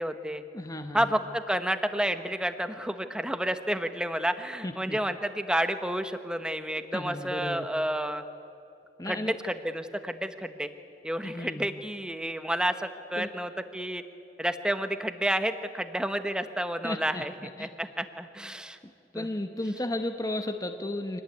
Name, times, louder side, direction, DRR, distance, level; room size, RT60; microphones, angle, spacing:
voice 1, 0.0-0.4 0.9-8.2 9.1-10.7 11.0-14.0 14.4-18.8 19.1-19.3, right 1 dB, 5° right, 9 dB, 1.0 m, -30 dB
voice 2, 0.5-1.1 4.6-5.0 6.9-7.7 9.0-9.4 11.2-11.7 13.2-13.3 16.8-17.2 17.6-17.7 19.1-21.2, left 1 dB, 20° left, 6 dB, 1.0 m, -34 dB
25.0 x 18.5 x 9.4 m, 2.7 s
head